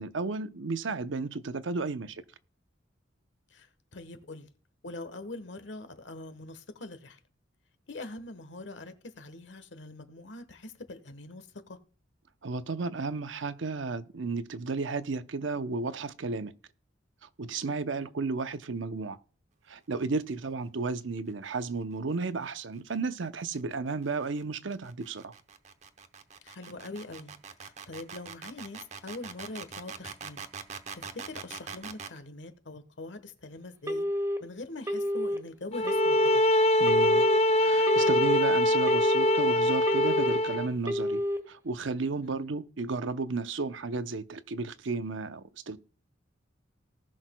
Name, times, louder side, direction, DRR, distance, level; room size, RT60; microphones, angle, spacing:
voice 1, 0.0-2.2 12.4-16.5 17.4-19.2 19.7-25.3 36.8-37.2 37.6-41.2 41.5-45.8, right 4 dB, 90° right, 0.7 m, -33 dB
voice 2, 3.5-4.5 4.8-7.2 7.9-11.8 17.7-18.1 26.4-27.3 27.6-30.5 30.9-34.1 34.4-36.4 42.2-42.5, left 2 dB, 75° left, 1.2 m, -43 dB
sound 1, 22.9-32.2, right 6 dB, 40° right, 0.8 m, -43 dB
Telephone, 33.9-34.4 34.9-35.4 35.9-36.4 36.9-37.4 37.9-38.4 38.9-39.4 39.9-40.4 40.9-41.4, equal, 15° right, 1.5 m, -29 dB
sound 2, 35.7-40.7, left 1 dB, 35° left, 0.5 m, -23 dB
19.0 x 6.3 x 2.2 m
head